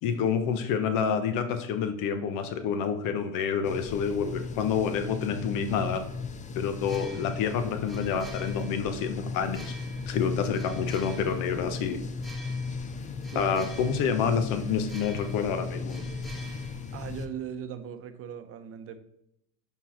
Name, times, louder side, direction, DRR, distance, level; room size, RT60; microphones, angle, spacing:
voice 1, 0.0-6.0 6.5-9.7 10.1-12.0 13.3-15.9, left 7 dB, 60° left, 1.1 m, -28 dB
sound 1, 3.6-17.3, left 4 dB, 20° left, 0.5 m, -36 dB
sound 2, 6.8-17.6, right 1 dB, ahead, 1.1 m, -50 dB
voice 2, 13.3-13.7 16.9-19.0, right 8 dB, 35° right, 0.9 m, -39 dB
5.6 x 4.6 x 5.7 m
supercardioid pair, 110°, 37 cm